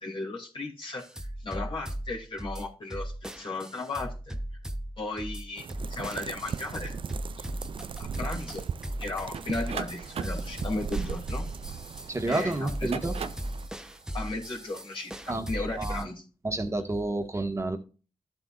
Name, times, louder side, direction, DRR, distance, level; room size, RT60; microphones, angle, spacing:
voice 1, 0.0-4.4 5.0-6.9 7.4-7.5 8.0-8.6 9.0-11.4 12.3-13.0 14.1-16.1, left 2 dB, 55° left, -5 dB, 2.8 m, -35 dB
sound 1, 1.0-16.0, right 1 dB, 5° right, 0.9 m, -38 dB
sound 2, 5.6-13.7, right 7 dB, 55° right, 0.4 m, -39 dB
sound 3, 9.3-12.1 12.7-13.6, right 7 dB, 75° right, 0.7 m, -38 dB
voice 2, 12.1-13.2 15.3-16.1 16.4-17.8, right 2 dB, 25° right, 6 dB, 1.6 m, -30 dB
12.0 x 7.9 x 2.5 m, 0.34 s
cardioid pair, 65°, 11 cm